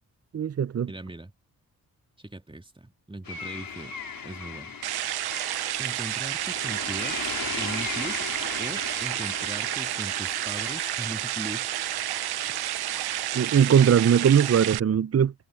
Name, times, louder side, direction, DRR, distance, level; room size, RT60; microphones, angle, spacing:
voice 1, 0.3-0.9 13.3-15.3, right 8 dB, 40° right, 0.7 m, -20 dB
voice 2, 0.9-1.3 2.2-4.0 4.2-4.8 5.8-8.3 8.6-11.7 12.8-12.9, right 2 dB, 15° right, 2.7 m, -39 dB
sound 1, 3.3-14.6, left 6 dB, 65° left, 4.7 m, -39 dB
sound 2, 4.8-14.8, right 14 dB, 90° right, 1.0 m, -30 dB
supercardioid pair, 45°, 37 cm